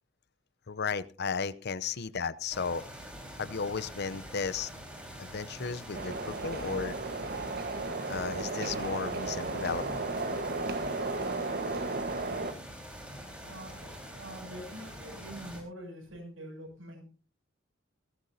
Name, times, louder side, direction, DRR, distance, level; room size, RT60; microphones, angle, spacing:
voice 1, 0.7-2.8 3.4-4.7 5.2-7.0 8.1-10.0, left 5 dB, 55° left, 17 dB, 0.7 m, -34 dB
sound 1, 2.5-15.6, equal, 5° right, 4.3 m, -45 dB
sound 2, 5.9-12.5, right 3 dB, 50° right, 1.4 m, -34 dB
voice 2, 13.4-17.0, right 1 dB, 85° right, 1 dB, 7.2 m, -46 dB
19.0 x 15.0 x 2.8 m, 0.35 s
head